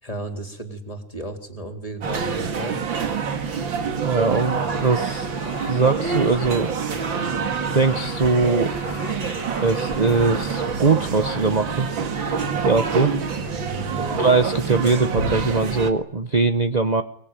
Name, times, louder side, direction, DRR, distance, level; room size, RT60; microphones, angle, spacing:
voice 1, 0.0-2.8 13.5-14.2, right 1 dB, 20° left, 5 dB, 3.6 m, -34 dB
sound 1, 2.0-15.9, right 5 dB, 85° right, 2.8 m, -26 dB
voice 2, 4.0-5.3 5.7-6.7 7.7-8.7 9.6-11.9 12.6-13.1 14.1-17.0, right 4 dB, 30° right, 9 dB, 0.9 m, -21 dB
sound 2, 4.3-12.4, left 5 dB, 35° left, 1.2 m, -41 dB
23.5 x 22.5 x 9.1 m, 0.64 s
omnidirectional pair, 2.0 m